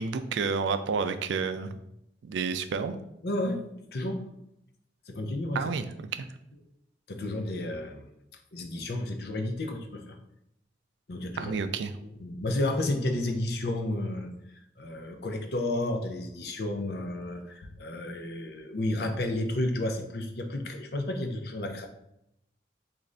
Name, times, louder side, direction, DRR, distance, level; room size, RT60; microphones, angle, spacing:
voice 1, 0.0-1.8 2.2-3.0 5.5-5.8 6.2-6.3 11.4-11.9, right 5 dB, 80° right, 10 dB, 0.3 m, -30 dB
voice 2, 3.2-3.6 3.9-4.3 5.1-5.7 7.1-8.1 8.5-10.2 11.1-11.5 12.1-14.3 14.8-21.9, left 1 dB, 60° left, 5 dB, 0.5 m, -31 dB
3.8 x 2.5 x 3.2 m, 0.79 s
head